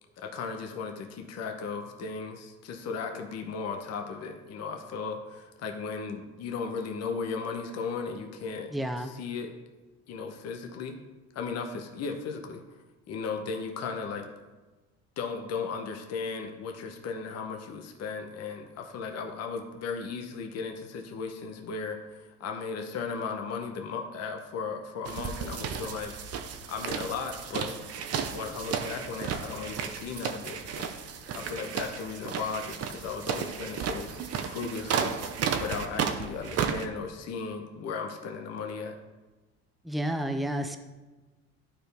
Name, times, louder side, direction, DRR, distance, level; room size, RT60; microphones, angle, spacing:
voice 1, 0.2-8.7 9.0-9.5 10.1-11.0 11.3-12.6 13.1-14.3 15.2-26.1 26.7-27.8 28.3-31.0 31.3-35.2 35.6-38.9, left 5 dB, 55° left, 4 dB, 0.9 m, -36 dB
voice 2, 8.7-9.1 39.8-40.8, right 1 dB, ahead, 6 dB, 0.5 m, -30 dB
sound 1, 25.0-36.9, right 7 dB, 50° right, 0.7 m, -33 dB
11.5 x 4.5 x 3.4 m, 1.2 s
cardioid pair, 105°, 31 cm